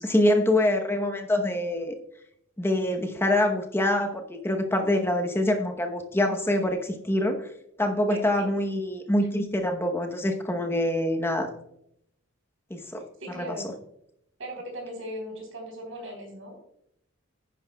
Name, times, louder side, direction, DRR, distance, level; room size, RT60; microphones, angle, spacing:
voice 1, 0.0-1.9 2.6-7.5 7.8-11.5 12.7-13.1 13.4-13.6, left 1 dB, 10° left, 4 dB, 0.9 m, -25 dB
voice 2, 8.1-8.5 13.2-13.7 14.4-16.6, equal, 75° right, 1 dB, 3.6 m, -38 dB
11.0 x 9.7 x 2.3 m, 0.76 s
head